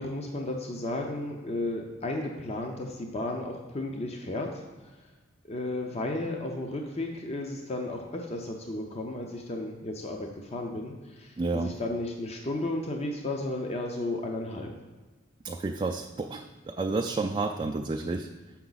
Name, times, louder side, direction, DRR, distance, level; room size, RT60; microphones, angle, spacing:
voice 1, 0.0-4.7 5.4-14.7, left 2 dB, 35° left, 2 dB, 0.6 m, -33 dB
voice 2, 11.4-11.7 15.4-18.3, right 3 dB, 25° right, 3 dB, 0.3 m, -30 dB
7.4 x 5.8 x 4.0 m, 1.3 s
head